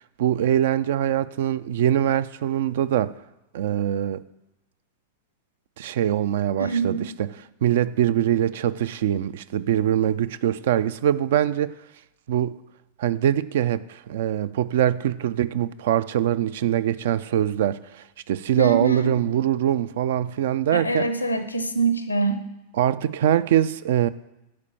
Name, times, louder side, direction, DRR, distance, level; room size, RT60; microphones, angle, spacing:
voice 1, 0.2-3.1 3.5-4.2 5.8-7.3 7.6-11.8 12.3-12.6 13.0-21.1 22.8-24.1, right 11 dB, 60° right, 16 dB, 0.3 m, -23 dB
voice 2, 6.6-7.0 18.6-19.1 20.7-22.4, right 3 dB, 85° left, 10 dB, 0.7 m, -24 dB
9.6 x 4.4 x 7.1 m, 0.95 s
figure-of-eight pair, 90°, 0 cm